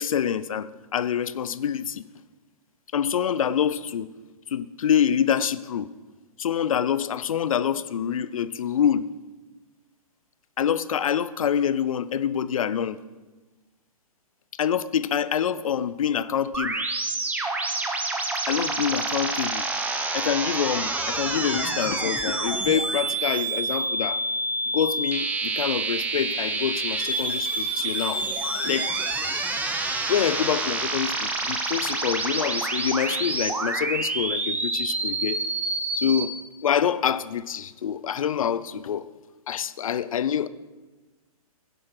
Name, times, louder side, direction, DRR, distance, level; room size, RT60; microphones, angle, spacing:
voice 1, 0.0-2.0 2.9-4.1 4.5-5.9 6.4-9.1 10.6-13.0 14.6-16.9 18.5-19.7 20.1-24.2 24.7-28.2 28.6-28.9 30.1-35.4 35.9-36.3 36.6-39.0 39.5-40.5, left 8 dB, 60° left, 16 dB, 0.7 m, -26 dB
sound 1, 16.5-36.3, right 2 dB, 10° right, 1.3 m, -28 dB
16.0 x 11.5 x 4.7 m, 1.2 s
figure-of-eight pair, 125°, 19 cm